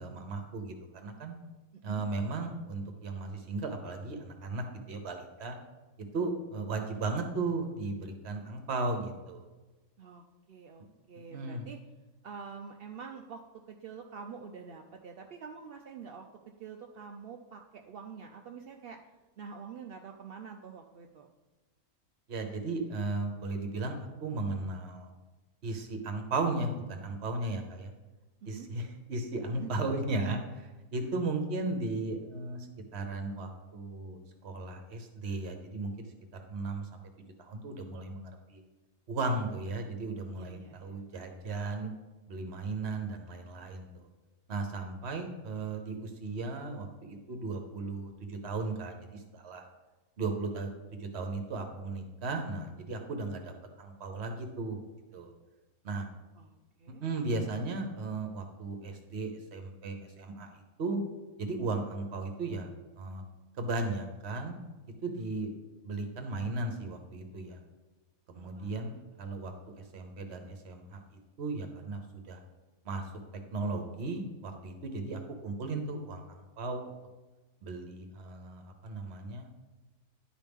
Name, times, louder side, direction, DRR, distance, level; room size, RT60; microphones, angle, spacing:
voice 1, 0.0-1.3 1.8-5.6 6.0-9.5 11.3-11.7 22.3-25.1 25.6-27.9 28.4-32.7 32.9-36.1 36.3-37.0 37.4-38.6 39.1-41.9 42.3-43.9 44.5-49.7 50.2-50.7 51.0-54.8 55.1-55.3 55.8-56.1 57.0-61.0 61.4-62.7 63.0-63.2 63.6-64.6 65.0-65.5 65.8-67.6 68.3-71.0 71.4-72.4 72.8-73.0 73.5-76.9 77.6-79.5, right 3 dB, 50° right, 5 dB, 1.1 m, -36 dB
voice 2, 10.0-11.8 12.2-16.3 16.6-19.1 19.4-21.3 28.5-28.7 29.5-29.7 31.0-31.1 39.3-39.5 40.3-41.0 56.4-57.0 68.3-69.0, right 6 dB, 80° right, 3 dB, 0.5 m, -47 dB
11.0 x 4.9 x 3.5 m, 1.2 s
omnidirectional pair, 1.6 m